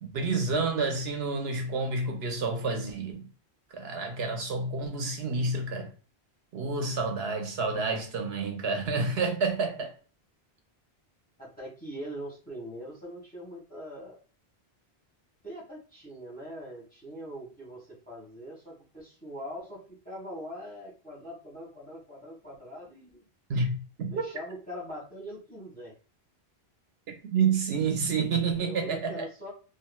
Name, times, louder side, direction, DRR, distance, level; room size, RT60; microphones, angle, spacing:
voice 1, 0.0-3.3 3.7-5.9 6.5-9.9 23.5-24.2 27.2-29.2, right 4 dB, 75° right, 0.8 m, -29 dB
voice 2, 11.4-14.2 15.4-23.2 24.1-25.9 28.5-29.5, equal, 10° left, 1.3 m, -42 dB
2.9 x 2.5 x 2.2 m
omnidirectional pair, 1.1 m